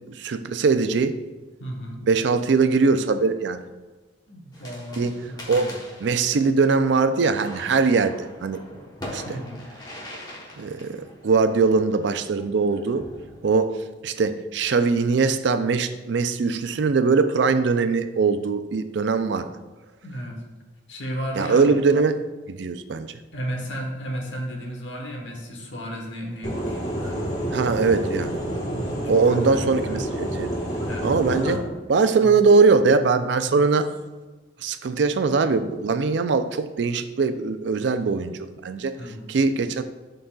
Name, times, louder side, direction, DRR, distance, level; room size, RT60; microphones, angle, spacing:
voice 1, 0.1-1.2 2.0-3.6 5.0-5.1 5.5-8.6 9.1-9.4 10.6-11.0 11.2-13.1 13.4-13.7 14.0-19.5 21.4-22.2 22.5-23.1 27.5-28.4 29.1-30.5 31.0-31.6 31.9-33.9 34.6-38.9 39.3-39.8, right 4 dB, 65° right, 10 dB, 0.4 m, -21 dB
voice 2, 1.6-2.0 4.3-5.8 9.2-9.7 20.0-20.4 20.9-21.8 23.3-27.3 28.7-30.0 30.8-31.7 32.2-32.4 39.0-39.3, equal, 70° left, 1 dB, 1.2 m, -34 dB
sound 1, 4.5-13.7, left 1 dB, 20° left, 1.0 m, -42 dB
sound 2, 26.4-31.6, right 1 dB, 40° left, 1.2 m, -28 dB
11.0 x 4.0 x 2.3 m, 1.2 s
head